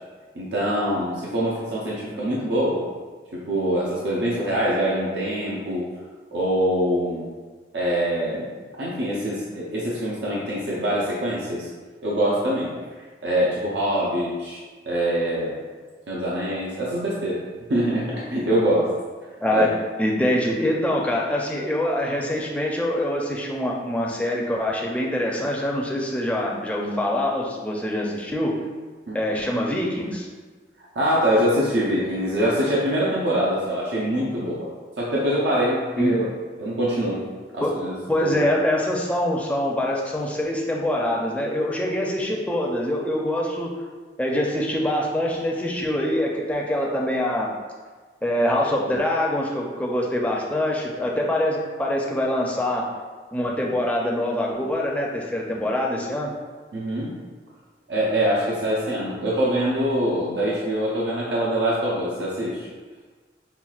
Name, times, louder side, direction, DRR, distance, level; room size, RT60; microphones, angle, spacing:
voice 1, 0.3-2.8 3.3-5.9 6.3-7.3 7.7-8.5 8.8-11.7 12.0-12.7 13.2-15.5 16.1-17.4 17.7-18.9 19.5-19.7 29.1-29.2 30.9-34.7 35.0-36.3 36.6-37.2 37.5-37.9 38.3-38.4 56.7-57.1 57.9-62.7, equal, 85° right, -6 dB, 0.6 m, -24 dB
voice 2, 20.0-28.6 29.1-30.3 36.0-36.2 37.6-37.7 38.1-43.7 44.2-47.5 48.2-52.9 53.3-56.3, left 1 dB, 10° left, -2 dB, 0.4 m, -24 dB
5.6 x 2.3 x 2.4 m, 1.4 s
head